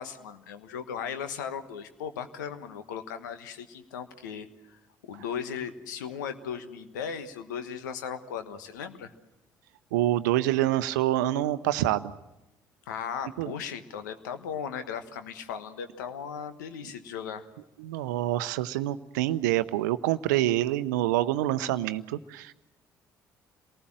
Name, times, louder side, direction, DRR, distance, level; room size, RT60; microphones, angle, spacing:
voice 1, 0.0-9.1 12.9-17.5, left 7 dB, 80° left, 10 dB, 1.3 m, -37 dB
voice 2, 9.9-12.1 13.4-13.5 17.8-22.5, right 14 dB, 75° right, 14 dB, 0.7 m, -26 dB
27.5 x 19.0 x 7.6 m, 0.97 s
hypercardioid pair, 50°, 10 cm